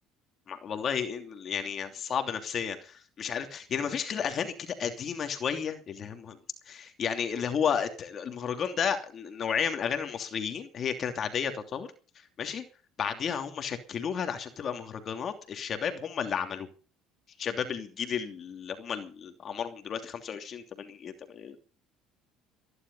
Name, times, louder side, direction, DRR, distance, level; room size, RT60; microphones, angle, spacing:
voice 1, 0.5-6.4 6.7-11.9 12.1-12.6 13.0-16.7 17.4-21.6, left 7 dB, 45° left, 6 dB, 2.9 m, -32 dB
20.5 x 11.5 x 5.5 m, 0.37 s
supercardioid pair, 105°, 0 cm